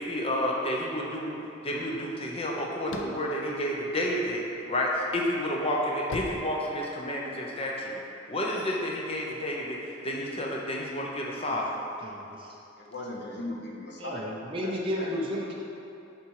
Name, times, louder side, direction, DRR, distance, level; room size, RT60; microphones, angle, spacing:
voice 1, 0.0-1.4 1.6-4.4 4.7-8.0 8.3-9.8 10.0-11.8, left 1 dB, 30° left, -2 dB, 0.9 m, -30 dB
sound 1, 2.7-4.6 5.1-7.3, left 2 dB, 85° left, 0.6 m, -39 dB
voice 2, 12.0-12.5 14.0-15.5, equal, 30° right, -3 dB, 0.7 m, -33 dB
voice 3, 12.8-14.3 14.6-15.1, left 2 dB, 60° left, -1 dB, 1.0 m, -38 dB
7.0 x 4.7 x 4.8 m, 2.7 s
head